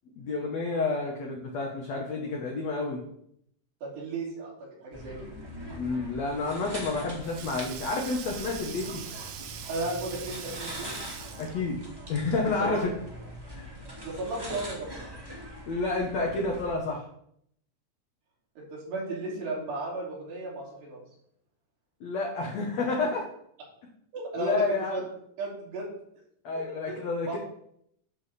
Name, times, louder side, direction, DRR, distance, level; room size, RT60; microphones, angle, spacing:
voice 1, 0.2-3.0 5.8-9.0 11.4-11.8 12.1-12.9 13.5-13.7 15.7-17.0 22.0-23.2 24.4-25.0 26.4-27.4, left 3 dB, 65° left, 0 dB, 1.7 m, -30 dB
voice 2, 3.8-4.5 4.8-5.1 9.7-10.9 12.6-12.8 14.0-14.9 18.7-21.0 24.1-24.6 24.9-25.0 25.4-25.9 26.9-27.4, right 2 dB, 90° right, -5 dB, 5.3 m, -34 dB
sound 1, 4.9-16.7, equal, 10° right, 1.1 m, -42 dB
Sink (filling or washing), 6.6-11.7, right 9 dB, 75° right, 2.6 m, -42 dB
11.0 x 6.5 x 4.2 m, 0.70 s
omnidirectional pair, 4.7 m